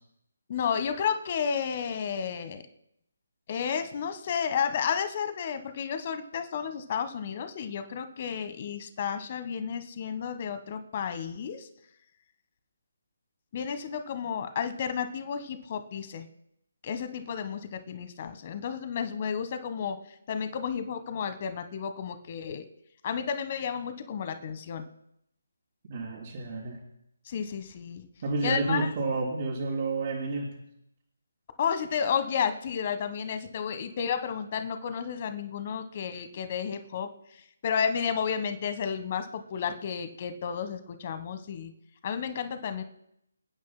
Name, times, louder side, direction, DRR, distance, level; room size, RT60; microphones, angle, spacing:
voice 1, 0.5-2.6 3.5-11.7 13.5-16.3 16.8-20.0 20.3-22.6 23.0-24.9 27.3-28.0 28.4-28.9 31.6-37.1 37.6-41.7 42.0-42.8, left 7 dB, 35° left, 10 dB, 1.2 m, -32 dB
voice 2, 25.9-26.8 28.2-30.5, right 3 dB, 40° right, -6 dB, 3.5 m, -30 dB
28.0 x 9.6 x 2.2 m, 0.77 s
figure-of-eight pair, 150°, 0 cm